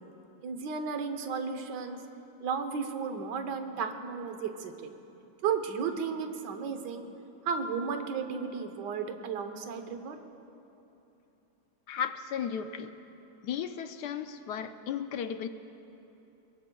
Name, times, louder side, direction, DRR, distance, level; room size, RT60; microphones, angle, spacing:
voice 1, 0.4-2.0 2.4-4.9 5.4-7.1 7.4-10.2, right 6 dB, 70° right, 6 dB, 1.5 m, -34 dB
voice 2, 11.9-12.9 13.4-15.5, left 8 dB, 75° left, 9 dB, 1.1 m, -35 dB
22.5 x 22.5 x 2.3 m, 2.9 s
omnidirectional pair, 1.9 m